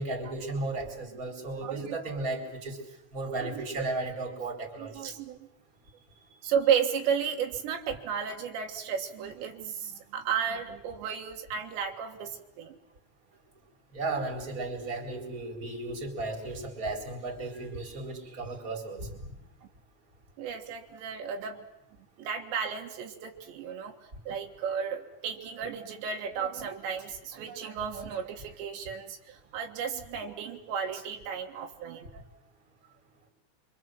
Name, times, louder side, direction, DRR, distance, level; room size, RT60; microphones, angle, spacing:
voice 1, 0.0-2.8 3.1-5.1 13.9-19.1, right 2 dB, 20° right, 3 dB, 4.2 m, -35 dB
voice 2, 1.6-2.0 3.4-3.6 4.8-5.5 6.4-12.8 20.4-21.7 22.2-24.0 24.3-32.2, right 7 dB, 80° right, 2 dB, 3.9 m, -33 dB
26.5 x 25.0 x 7.7 m, 0.84 s
omnidirectional pair, 5.1 m